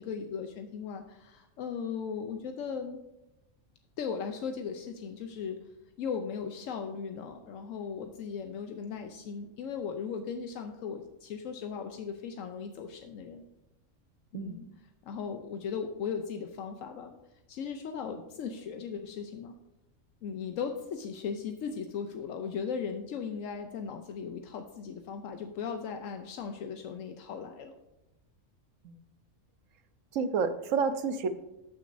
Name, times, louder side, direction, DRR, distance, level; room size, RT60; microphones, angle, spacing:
voice 1, 0.0-3.0 4.0-5.6 6.0-13.4 14.3-14.7 15.0-17.2 17.5-19.5 20.2-27.7, left 6 dB, 80° left, 6 dB, 1.0 m, -37 dB
voice 2, 30.1-31.3, right 5 dB, 80° right, 10 dB, 1.1 m, -29 dB
13.5 x 6.1 x 2.6 m, 0.97 s
omnidirectional pair, 1.3 m